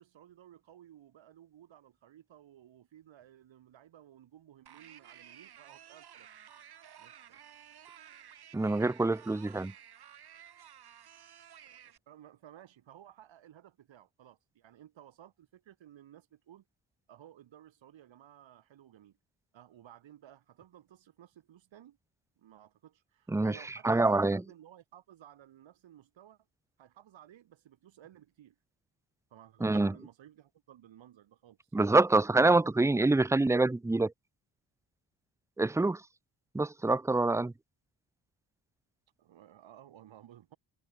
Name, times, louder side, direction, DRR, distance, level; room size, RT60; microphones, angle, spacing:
voice 1, 0.0-6.3 7.0-7.4 11.7-16.6 17.1-19.2 19.5-22.0 22.4-26.4 26.8-28.5 29.3-31.6 39.2-40.6, right 11 dB, 85° right, 4.8 m, -56 dB
sound 1, 4.7-12.0, right 9 dB, 60° right, 2.8 m, -54 dB
voice 2, 8.5-9.7 23.3-23.6 23.8-24.4 29.6-29.9 31.7-34.1 35.6-36.0 36.5-37.5, right 2 dB, 5° right, 0.5 m, -26 dB
wide cardioid pair, 155°, 44 cm